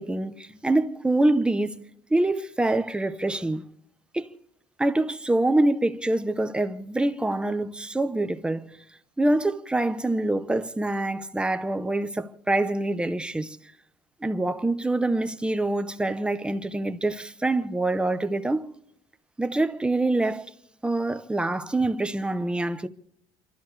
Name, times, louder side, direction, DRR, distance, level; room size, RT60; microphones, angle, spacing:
voice 1, 0.0-1.8 2.1-3.6 4.1-4.3 4.8-8.7 9.2-13.6 14.2-18.7 19.4-20.5 20.8-22.9, right 2 dB, 10° right, 0.7 m, -25 dB
29.5 x 13.0 x 3.2 m
cardioid pair, 130°, 11 cm